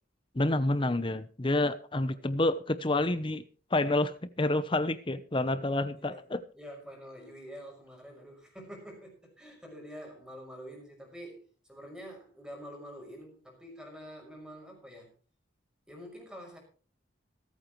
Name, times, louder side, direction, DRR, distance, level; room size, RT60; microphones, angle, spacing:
voice 1, 0.3-3.4 3.7-6.4, left 2 dB, 25° left, 13 dB, 0.8 m, -28 dB
voice 2, 6.5-11.4 11.7-15.1 15.9-16.6, equal, 5° right, 1 dB, 5.8 m, -47 dB
26.0 x 9.0 x 3.2 m, 0.40 s
head